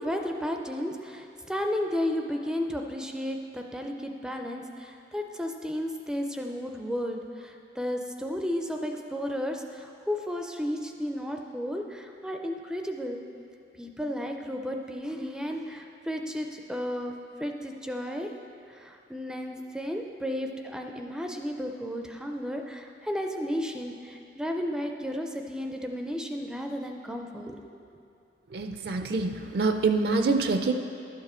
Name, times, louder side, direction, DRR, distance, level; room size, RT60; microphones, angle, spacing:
voice 1, 0.0-13.2 13.8-17.1 17.4-18.3 18.7-27.7, equal, 5° right, 3 dB, 0.4 m, -33 dB
voice 2, 28.5-30.7, right 3 dB, 60° right, 6 dB, 0.5 m, -26 dB
11.5 x 7.4 x 4.3 m, 2.6 s
head